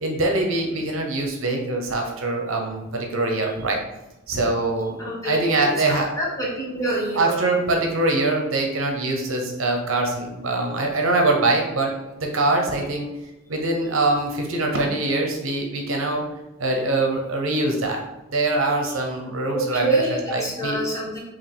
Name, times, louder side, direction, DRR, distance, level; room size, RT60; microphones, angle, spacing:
voice 1, 0.0-3.8 4.3-5.0 5.2-6.2 7.2-13.1 13.5-16.2 16.6-18.0 18.3-20.8, right 2 dB, 65° right, 2 dB, 0.8 m, -23 dB
voice 2, 5.0-7.4 19.5-21.2, right 1 dB, 15° left, -5 dB, 1.2 m, -26 dB
4.8 x 2.9 x 3.5 m, 1.0 s
head